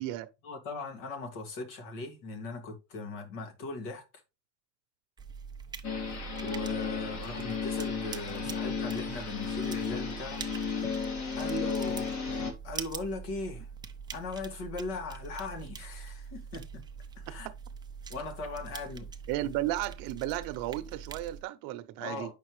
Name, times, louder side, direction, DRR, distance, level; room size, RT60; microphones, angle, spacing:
voice 1, 0.4-4.0 6.4-10.5 11.3-12.1 12.6-13.7 14.1-16.8 17.2-17.5 18.1-19.1 22.0-22.3, left 3 dB, 65° left, 2.3 m, -39 dB
sound 1, 5.2-21.4, right 6 dB, 10° right, 0.6 m, -44 dB
sound 2, 5.8-12.5, left 6 dB, 45° left, 2.0 m, -34 dB
voice 2, 19.3-22.3, right 15 dB, 60° right, 0.9 m, -34 dB
8.2 x 5.5 x 3.2 m
supercardioid pair, 130°, 39 cm